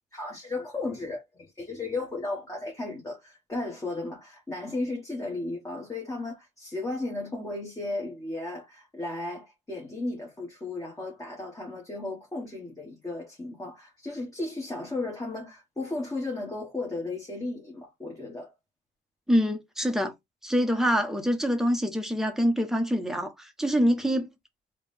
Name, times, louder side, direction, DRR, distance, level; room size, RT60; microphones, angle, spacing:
voice 1, 0.1-1.2 1.6-18.5, left 2 dB, 15° left, 1.3 m, -35 dB
voice 2, 19.3-20.1 20.4-24.3, equal, ahead, 1.0 m, -25 dB
3.8 x 2.4 x 3.4 m
cardioid pair, 90°, 20 cm